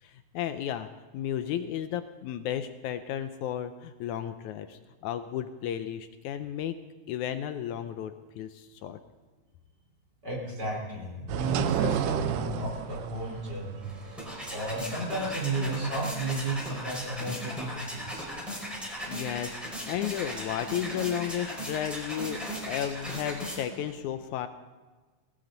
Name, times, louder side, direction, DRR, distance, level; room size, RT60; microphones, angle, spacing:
voice 1, 0.0-6.8 7.1-9.0 19.0-24.5, left 10 dB, 80° left, 10 dB, 1.8 m, -33 dB
voice 2, 10.2-13.9 14.5-18.3, right 2 dB, 30° right, -2 dB, 4.3 m, -33 dB
sound 1, 11.3-16.5, right 11 dB, 80° right, 2.1 m, -33 dB
sound 2, 13.8-23.9, equal, ahead, 4.3 m, -37 dB
19.0 x 16.5 x 4.0 m, 1.3 s
omnidirectional pair, 3.9 m